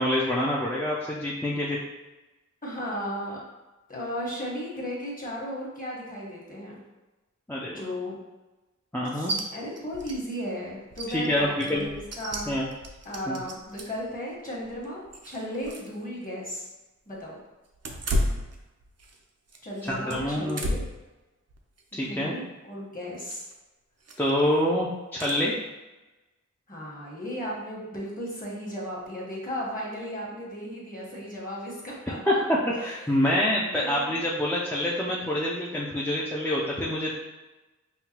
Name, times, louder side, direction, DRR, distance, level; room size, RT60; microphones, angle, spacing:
voice 1, 0.0-1.8 7.5-7.8 8.9-9.4 11.1-11.9 12.5-12.7 13.3-13.4 19.9-20.6 21.9-22.4 24.2-25.6 32.3-37.1, left 1 dB, 5° left, -5 dB, 0.5 m, -26 dB
voice 2, 2.6-3.4 3.9-6.8 7.7-8.2 9.1-12.5 13.0-16.7 17.1-17.4 19.6-20.8 21.9-23.4 26.7-32.4 32.7-33.3 33.7-34.2, equal, 30° left, -5 dB, 1.3 m, -35 dB
sound 1, 9.3-9.4 9.8-10.2 10.5-10.6 10.9-14.1 14.6-16.0 16.2-16.3 17.7-19.2 19.5-21.0 21.5-21.8 23.2-23.5 24.0-24.4 25.2-25.4, equal, 60° right, 0.6 m, -33 dB
5.6 x 2.2 x 2.9 m, 1.1 s
wide cardioid pair, 85°, 29 cm